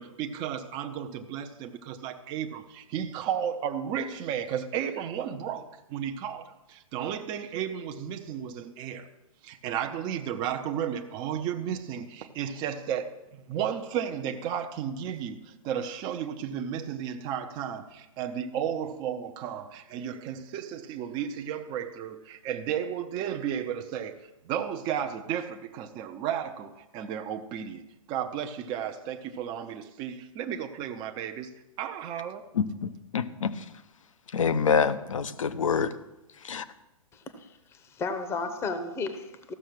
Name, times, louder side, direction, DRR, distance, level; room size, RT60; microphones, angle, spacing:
voice 1, 0.0-9.1 9.4-27.8 28.1-32.5, right 9 dB, 25° right, 0.7 m, -33 dB
voice 2, 32.5-33.6 34.3-35.9 36.4-36.6, left 6 dB, 65° left, 0.8 m, -26 dB
voice 3, 37.1-37.5 37.7-39.5, left 4 dB, 15° left, 0.9 m, -33 dB
14.5 x 6.4 x 6.2 m
figure-of-eight pair, 120°, 18 cm